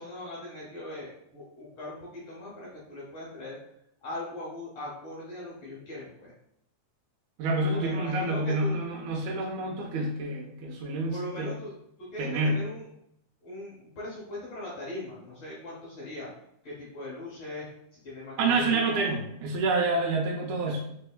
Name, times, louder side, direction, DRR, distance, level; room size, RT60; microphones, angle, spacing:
voice 1, 0.0-3.6 4.0-6.3 7.7-8.8 11.1-11.7 12.0-12.8 13.4-16.3 16.6-17.7 18.0-19.1, left 1 dB, 65° left, -5 dB, 1.7 m, -40 dB
voice 2, 7.4-11.5 12.2-12.6 18.4-20.8, right 2 dB, 80° right, 0 dB, 1.9 m, -28 dB
4.3 x 3.3 x 2.2 m, 0.74 s
omnidirectional pair, 3.6 m